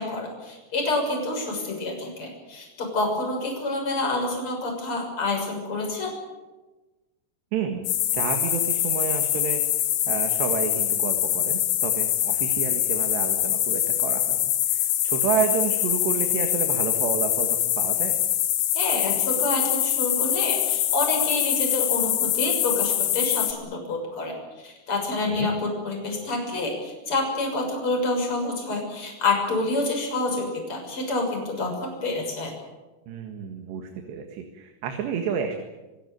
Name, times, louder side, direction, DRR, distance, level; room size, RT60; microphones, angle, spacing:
voice 1, 0.0-6.1 18.7-25.5 25.8-32.5, left 2 dB, 30° left, 1 dB, 7.1 m, -28 dB
voice 2, 7.5-7.9 8.1-9.6 10.1-18.2 25.3-25.5 33.1-35.6, right 7 dB, 75° right, 5 dB, 3.9 m, -30 dB
sound 1, 7.8-23.5, left 12 dB, 65° left, 2.9 m, -24 dB
27.0 x 16.5 x 9.5 m, 1.2 s
omnidirectional pair, 5.0 m